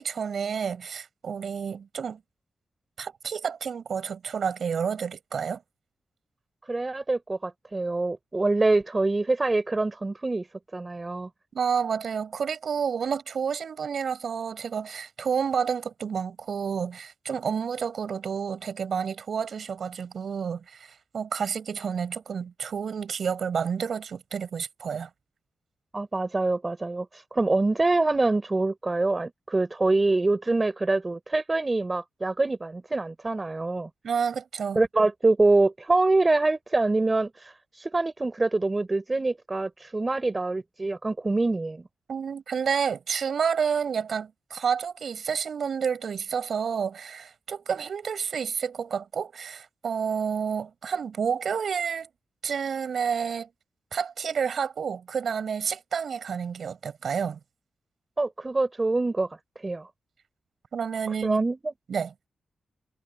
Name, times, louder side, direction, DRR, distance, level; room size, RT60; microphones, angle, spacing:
voice 1, 0.0-2.2 3.0-5.6 11.5-25.1 34.0-34.8 42.1-52.1 52.4-53.5 53.9-57.4 60.7-61.5 61.9-62.1, right 6 dB, 65° right, 7.5 m, -30 dB
voice 2, 6.7-10.5 10.7-11.3 25.9-33.9 34.8-41.8 58.2-59.3 59.6-59.9 61.2-61.7, right 2 dB, 25° right, 4.1 m, -25 dB
cardioid pair, 100°, 0 cm